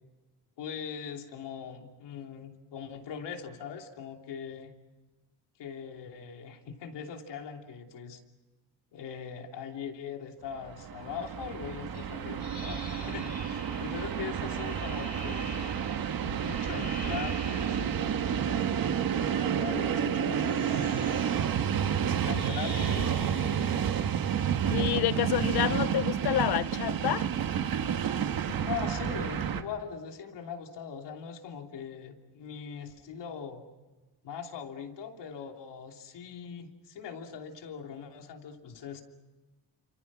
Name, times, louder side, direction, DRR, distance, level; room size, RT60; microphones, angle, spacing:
voice 1, 0.6-4.7 5.6-8.2 8.9-21.6 22.0-23.9 28.6-33.7 34.2-39.0, left 7 dB, 80° left, 3.1 m, -41 dB
Train, 10.6-29.6, right 8 dB, 55° right, 1.6 m, -30 dB
sound 1, 11.9-18.1 18.9-19.6 20.3-25.6, left 1 dB, 20° left, 3.2 m, -47 dB
voice 2, 24.7-27.3, left 14 dB, 65° left, 0.8 m, -28 dB
30.0 x 26.5 x 6.1 m
cardioid pair, 145°, 41 cm